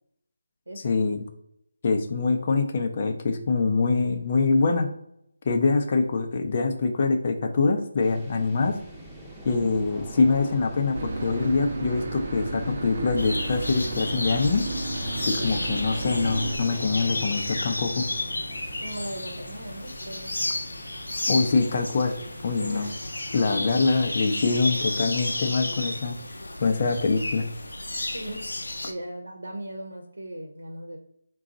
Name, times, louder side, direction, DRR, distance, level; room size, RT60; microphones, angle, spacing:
voice 1, 0.8-1.2 1.8-4.9 5.4-8.7 9.4-14.7 15.3-18.0 21.3-22.1 22.4-22.9 23.3-26.1 26.6-27.4, left 4 dB, 40° left, 5 dB, 0.6 m, -24 dB
sound 1, 8.0-24.9, right 1 dB, 5° right, 0.8 m, -46 dB
Boat Water vehicle / Engine, 11.0-16.6, right 2 dB, 45° right, 0.7 m, -32 dB
sound 2, 13.2-28.9, left 2 dB, 85° left, 0.6 m, -32 dB
voice 2, 18.8-20.3 21.3-21.7 22.6-22.9 28.1-28.5 28.9-31.0, right 1 dB, 85° right, 0 dB, 0.8 m, -38 dB
3.8 x 2.3 x 3.8 m, 0.76 s
figure-of-eight pair, 160°, 0 cm